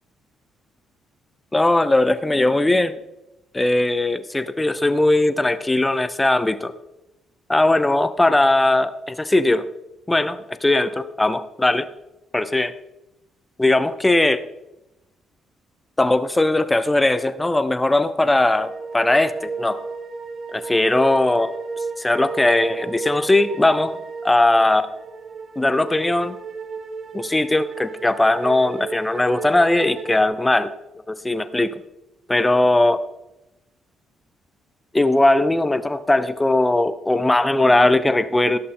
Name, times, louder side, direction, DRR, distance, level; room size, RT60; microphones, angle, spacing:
voice 1, 1.5-2.9 3.5-6.7 7.5-9.7 10.1-11.9 12.3-12.7 13.6-14.4 16.0-19.8 20.5-21.5 22.0-24.9 25.6-26.3 27.1-30.7 31.1-31.7 32.3-33.0 34.9-38.6, left 2 dB, 15° left, 13 dB, 0.6 m, -19 dB
sound 1, 18.5-30.2, right 4 dB, 45° right, 1.0 m, -34 dB
15.5 x 6.6 x 3.7 m, 0.95 s
cardioid pair, 90°, 0 cm